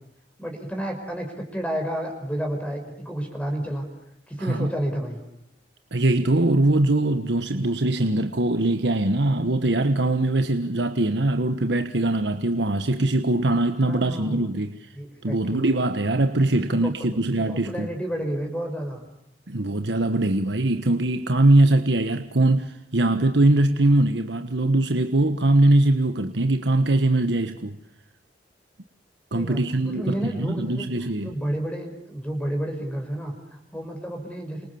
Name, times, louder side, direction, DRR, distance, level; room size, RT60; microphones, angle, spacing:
voice 1, 0.4-3.9 4.3-5.2 13.8-14.6 14.9-15.8 16.5-19.0 29.3-30.9 31.2-34.7, right 1 dB, 5° left, 5.6 m, -31 dB
voice 2, 4.4-4.7 5.9-14.8 15.2-17.9 19.5-27.8 29.3-31.3, right 2 dB, 75° right, 1.4 m, -22 dB
29.5 x 27.0 x 7.1 m
head